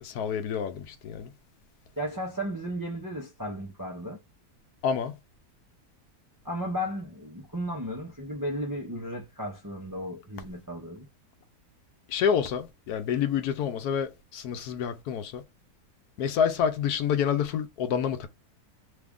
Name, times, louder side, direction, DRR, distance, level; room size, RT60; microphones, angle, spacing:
voice 1, 0.0-1.3 4.8-5.2 12.1-15.4 16.2-18.3, left 7 dB, 75° left, 1.1 m, -28 dB
voice 2, 2.0-4.2 6.4-11.1, equal, 35° right, 0.3 m, -34 dB
3.3 x 2.4 x 3.5 m
omnidirectional pair, 1.7 m